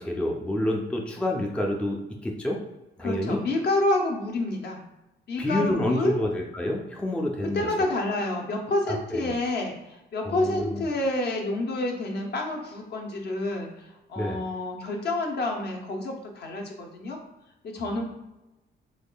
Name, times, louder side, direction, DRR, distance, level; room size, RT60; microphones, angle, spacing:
voice 1, 0.0-2.6 3.0-3.4 5.4-7.7 8.9-9.3 10.2-10.9 14.2-14.4, left 1 dB, 5° left, 0 dB, 0.4 m, -28 dB
voice 2, 3.0-4.8 5.3-6.2 7.5-17.2 17.6-18.1, left 2 dB, 55° left, 1 dB, 0.7 m, -28 dB
3.5 x 3.2 x 2.2 m, 0.97 s
cardioid pair, 90°, 20 cm